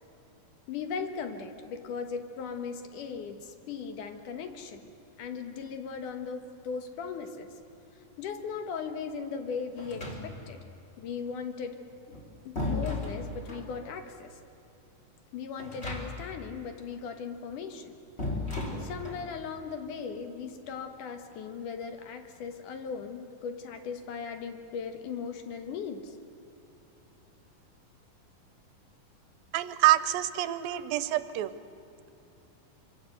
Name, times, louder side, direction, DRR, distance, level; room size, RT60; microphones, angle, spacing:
voice 1, 0.7-4.9 5.2-7.5 8.2-10.6 11.0-11.8 12.5-14.4 15.3-18.0 18.8-26.2, left 6 dB, 65° left, 7 dB, 2.9 m, -38 dB
sound 1, 9.8-10.6 11.9-13.7 15.6-16.4 16.7-16.8 18.2-19.3, left 2 dB, 20° left, 3.2 m, -35 dB
voice 2, 29.5-31.5, right 14 dB, 85° right, 13 dB, 2.5 m, -26 dB
26.5 x 24.5 x 7.9 m, 2.8 s
omnidirectional pair, 4.1 m